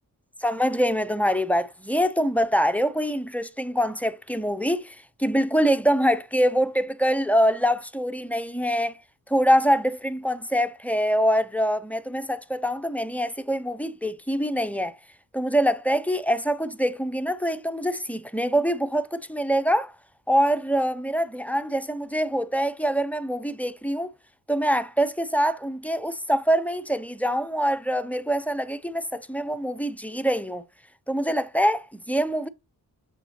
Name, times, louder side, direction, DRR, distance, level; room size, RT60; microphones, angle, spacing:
voice 1, 0.4-8.9 9.3-14.9 15.3-19.9 20.3-24.1 24.5-30.6 31.1-32.5, equal, 5° left, 0.5 m, -24 dB
7.0 x 5.5 x 2.8 m
cardioid pair, 75°, 36 cm